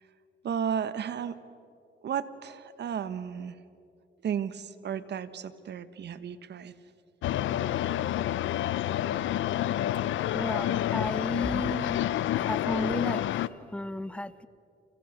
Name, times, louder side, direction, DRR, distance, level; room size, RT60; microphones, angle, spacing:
voice 1, 0.4-1.4 2.0-3.5 4.2-6.7, right 8 dB, 60° right, 13 dB, 1.4 m, -33 dB
sound 1, 7.2-13.5, left 12 dB, 75° left, 0.7 m, -29 dB
voice 2, 10.3-12.0 12.3-13.2 13.7-14.5, left 1 dB, 5° left, 14 dB, 1.0 m, -33 dB
29.5 x 29.0 x 6.7 m, 2.5 s
cardioid pair, 90°, 20 cm